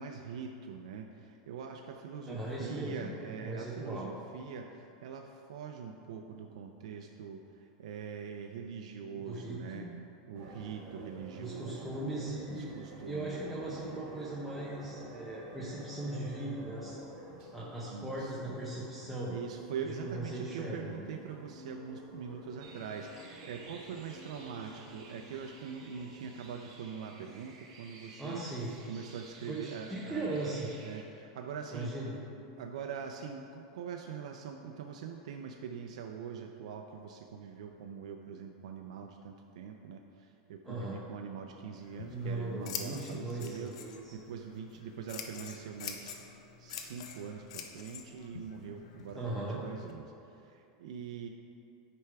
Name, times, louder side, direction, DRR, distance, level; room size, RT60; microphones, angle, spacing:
voice 1, 0.0-9.9 10.3-12.1 12.5-13.4 17.9-18.6 19.3-28.4 28.9-30.5 30.8-31.9 32.6-46.1 46.6-51.3, right 7 dB, 85° right, 3 dB, 0.4 m, -43 dB
voice 2, 2.3-4.1 9.3-9.9 11.3-12.7 13.1-17.3 17.5-19.4 20.0-21.2 28.2-28.7 29.5-30.7 31.7-32.2 40.6-41.0 42.1-44.1 49.1-49.6, right 2 dB, ahead, -7 dB, 0.7 m, -38 dB
sound 1, 10.3-26.7, right 1 dB, 35° right, 1.4 m, -50 dB
sound 2, 22.6-31.0, right 3 dB, 60° right, 1.3 m, -55 dB
Scissors, 41.8-49.9, left 7 dB, 75° left, 0.7 m, -46 dB
9.7 x 3.4 x 4.7 m, 2.7 s
supercardioid pair, 165°, 3 cm